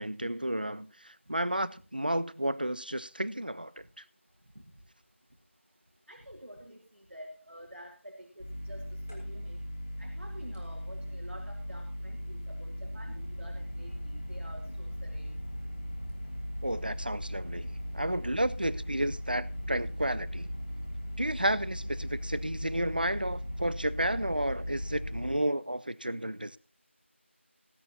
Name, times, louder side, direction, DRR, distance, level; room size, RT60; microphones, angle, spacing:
voice 1, 0.0-4.0 16.6-20.5 21.2-26.6, right 1 dB, 45° right, 0.4 m, -32 dB
voice 2, 6.1-9.6 10.0-15.3 19.6-19.7, equal, 85° right, 2.2 m, -49 dB
sound 1, 8.4-25.3, equal, 15° left, 1.3 m, -38 dB
18.5 x 9.9 x 2.8 m
figure-of-eight pair, 180°, 7 cm